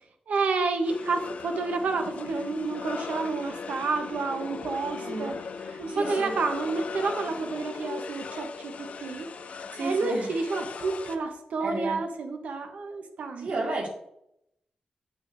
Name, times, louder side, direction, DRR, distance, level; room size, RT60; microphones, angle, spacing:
voice 1, 0.3-5.3 5.8-9.3 9.8-13.7, right 4 dB, 90° right, 5 dB, 1.0 m, -30 dB
sound 1, 0.8-11.2, left 5 dB, 65° left, 0.4 m, -38 dB
voice 2, 5.0-6.3 9.7-10.3 11.6-12.0 13.4-13.9, right 2 dB, 70° right, -1 dB, 1.8 m, -33 dB
8.4 x 6.2 x 2.6 m, 0.78 s
wide cardioid pair, 140°, 2 cm